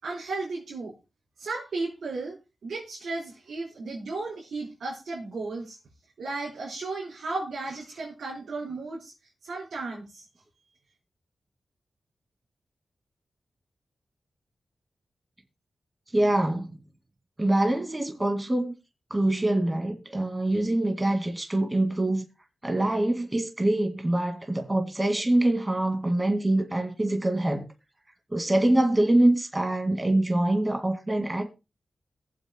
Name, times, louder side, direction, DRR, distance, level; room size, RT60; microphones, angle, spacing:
voice 1, 0.0-0.9 1.4-2.4 2.6-5.8 6.2-9.1 9.4-10.2, right 3 dB, 85° right, 4.2 m, -34 dB
voice 2, 16.1-16.7 17.4-18.7 19.1-22.2 22.6-27.7 28.3-31.5, right 1 dB, 25° right, 2.1 m, -24 dB
22.0 x 7.7 x 2.2 m
cardioid pair, 55°, 0 cm